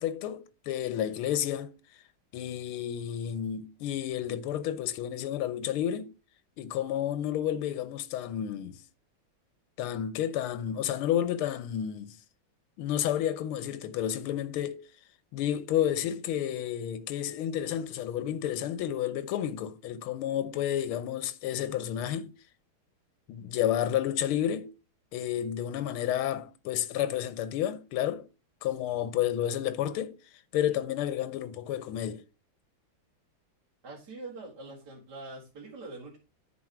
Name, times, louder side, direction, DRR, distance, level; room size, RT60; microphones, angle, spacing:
voice 1, 0.0-1.7 2.3-6.1 6.6-8.8 9.8-12.2 12.8-14.9 15.3-22.3 23.3-24.7 25.1-28.3 28.6-30.2 30.5-32.2, left 11 dB, 90° left, 1.6 m, -31 dB
voice 2, 33.8-36.2, right 2 dB, 50° right, 2.3 m, -44 dB
9.9 x 4.6 x 4.9 m
omnidirectional pair, 2.3 m